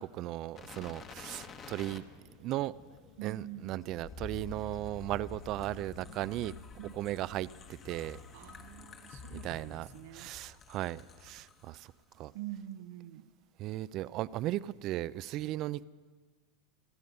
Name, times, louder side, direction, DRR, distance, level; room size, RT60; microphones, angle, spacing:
voice 1, 0.0-2.1 2.4-2.8 3.2-6.5 6.9-7.5 7.8-8.2 9.3-9.9 10.1-11.9 12.2-12.3 13.6-15.8, right 15 dB, 45° right, 0.4 m, -36 dB
sound 1, 0.6-11.8 12.1-12.2, left 4 dB, 30° left, 1.4 m, -49 dB
voice 2, 3.2-4.0 6.8-6.9 8.3-10.3 12.3-13.3, right 13 dB, 70° right, 0.8 m, -45 dB
27.0 x 9.5 x 5.4 m
supercardioid pair, 115°, 0 cm